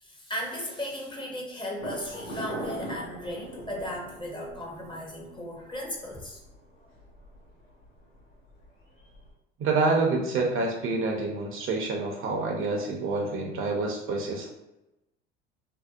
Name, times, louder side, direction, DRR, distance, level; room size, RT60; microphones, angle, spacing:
voice 1, 0.0-6.4, left 1 dB, 15° left, -1 dB, 0.6 m, -36 dB
sound 1, 1.8-9.3, right 1 dB, 85° left, 1.2 m, -43 dB
voice 2, 9.6-14.5, right 3 dB, 45° right, 1 dB, 0.6 m, -27 dB
2.7 x 2.1 x 2.3 m, 0.97 s
hypercardioid pair, 80°, 30 cm